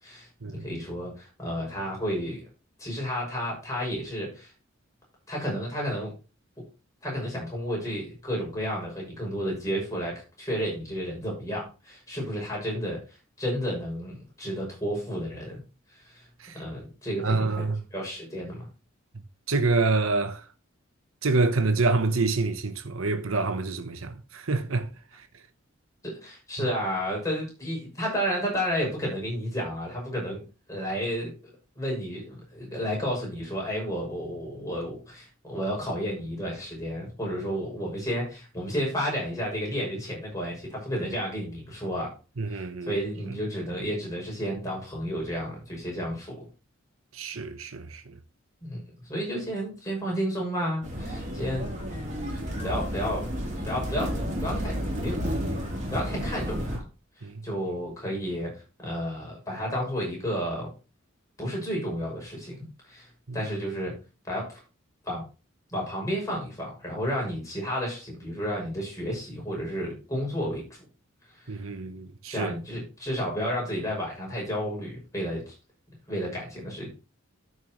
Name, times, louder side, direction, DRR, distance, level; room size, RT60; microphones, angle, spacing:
voice 1, 0.5-2.5 2.8-4.5 5.3-6.1 7.0-13.0 13.4-15.6 15.9-16.3 16.5-17.6 17.9-18.7 26.0-30.4 30.7-42.1 42.5-46.4 48.6-51.7 52.6-55.2 55.9-56.8 57.4-60.7 61.4-63.1 63.3-63.9 64.3-64.6 65.0-65.2 65.7-70.8 71.3-71.5 72.3-75.5 76.1-76.9, equal, 15° left, 6.3 m, -32 dB
voice 2, 17.2-17.8 19.5-20.4 21.2-24.9 42.4-43.0 47.1-48.0 57.2-57.4 71.5-72.5, right 3 dB, 80° right, 1.0 m, -27 dB
sound 1, 50.8-56.8, equal, 35° right, 3.3 m, -31 dB
13.0 x 6.9 x 3.1 m
head